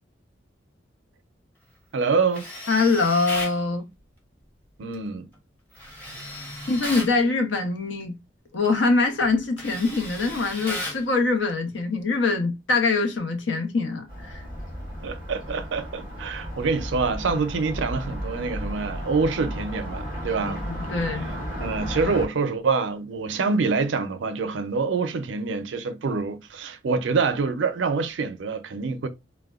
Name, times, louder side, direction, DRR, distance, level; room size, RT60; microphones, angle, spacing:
voice 1, 1.9-2.4 4.8-5.3 15.0-20.6 21.6-29.1, right 4 dB, 75° right, 0.5 m, -26 dB
Tools, 2.3-3.6 5.8-7.2 8.7-8.9 9.2-11.1, left 1 dB, 10° left, 0.8 m, -35 dB
voice 2, 2.7-3.8 6.7-8.2 8.5-14.4 20.4-21.3, left 3 dB, 75° left, 0.7 m, -24 dB
Car passing by, 14.1-22.3, equal, 45° left, 1.6 m, -34 dB
3.3 x 2.2 x 2.3 m
head